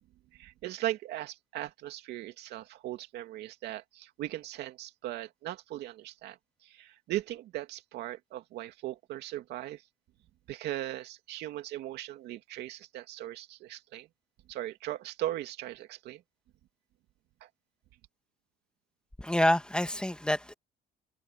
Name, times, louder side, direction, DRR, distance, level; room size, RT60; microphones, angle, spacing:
voice 1, 0.3-9.8 10.5-14.1 14.5-16.2 17.4-17.5, right 14 dB, 80° right, 2.6 m, -38 dB
voice 2, 19.2-20.5, left 1 dB, 5° left, 1.9 m, -27 dB
cardioid pair, 110°, 17 cm